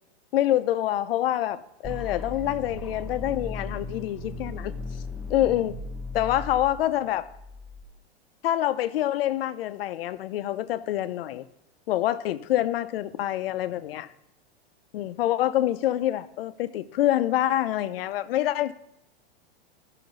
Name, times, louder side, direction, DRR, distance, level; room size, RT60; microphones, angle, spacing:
voice 1, 0.3-4.8 5.3-5.7 6.1-7.3 8.4-11.4 11.9-14.1 14.9-18.7, left 13 dB, 65° left, 0.7 m, -26 dB
sound 1, 1.8-7.8, left 3 dB, 5° right, 0.7 m, -37 dB
13.0 x 5.8 x 3.9 m
supercardioid pair, 145°, 31 cm